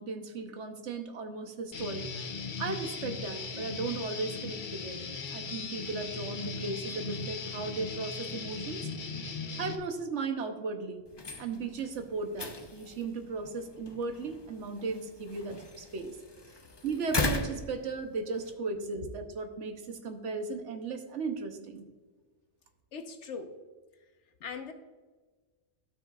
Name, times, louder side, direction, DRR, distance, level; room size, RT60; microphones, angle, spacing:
voice 1, 0.0-2.1 2.6-5.0 5.3-8.9 9.6-11.0 11.4-16.2 16.8-21.9, right 4 dB, 80° right, 6 dB, 1.2 m, -36 dB
Guitar, 1.7-9.8, left 4 dB, 50° left, 0.8 m, -38 dB
sound 1, 11.0-18.5, left 3 dB, 30° left, 0.6 m, -38 dB
voice 2, 18.7-19.1 22.9-23.5 24.4-24.7, left 5 dB, 75° left, 6 dB, 1.2 m, -41 dB
12.5 x 6.2 x 2.4 m, 1.3 s
omnidirectional pair, 1.2 m